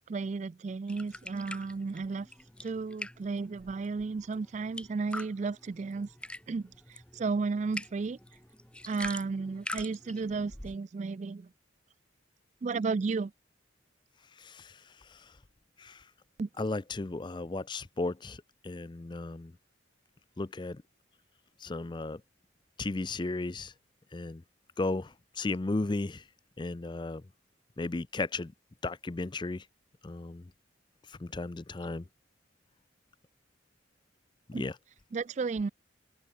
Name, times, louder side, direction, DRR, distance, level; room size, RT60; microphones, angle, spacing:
voice 1, 0.1-2.3 2.6-6.1 6.5-8.2 8.9-11.5 12.6-13.3 16.4-16.5 34.5-34.6 35.1-35.7, right 4 dB, 35° right, 0.3 m, -33 dB
sound 1, 0.9-10.8, left 1 dB, 5° left, 1.7 m, -45 dB
voice 2, 14.4-14.7 15.1-15.2 15.8-16.0 16.6-19.5 20.4-20.8 21.6-22.2 22.8-23.7 24.1-24.4 24.8-26.2 26.6-27.2 27.8-28.5 28.8-29.6 30.0-30.5 31.1-32.0 34.5-34.8, left 2 dB, 25° left, 0.5 m, -35 dB
open air
head